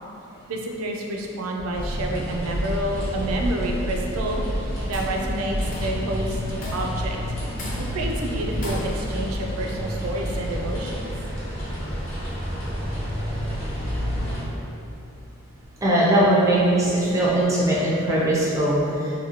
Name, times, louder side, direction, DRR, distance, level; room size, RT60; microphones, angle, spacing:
voice 1, 0.5-6.4 6.7-7.2 7.9-11.1, right 1 dB, 80° right, 1 dB, 0.4 m, -29 dB
sound 1, 1.7-14.4, equal, 65° left, 0.9 m, -29 dB
Tools, 4.7-5.2 5.7-6.1 6.6-7.1 7.6-8.1 8.6-9.2, left 1 dB, 40° left, 0.5 m, -35 dB
voice 2, 15.8-18.8, right 1 dB, 15° right, -7 dB, 0.5 m, -20 dB
2.7 x 2.7 x 2.8 m, 2.7 s
head